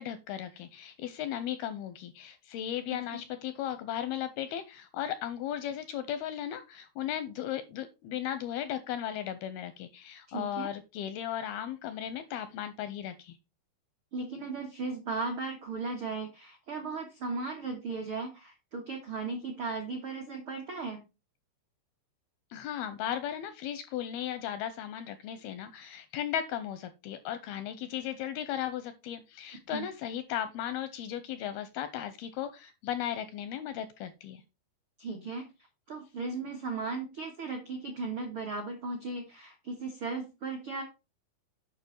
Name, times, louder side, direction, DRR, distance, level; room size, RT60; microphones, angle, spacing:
voice 1, 0.0-13.4 22.5-34.4, left 10 dB, 85° left, 11 dB, 2.3 m, -36 dB
voice 2, 10.3-10.7 14.1-21.0 29.7-29.9 35.0-35.5 35.9-40.8, right 3 dB, 70° right, 2 dB, 1.2 m, -36 dB
9.1 x 5.6 x 4.5 m, 0.27 s
omnidirectional pair, 5.0 m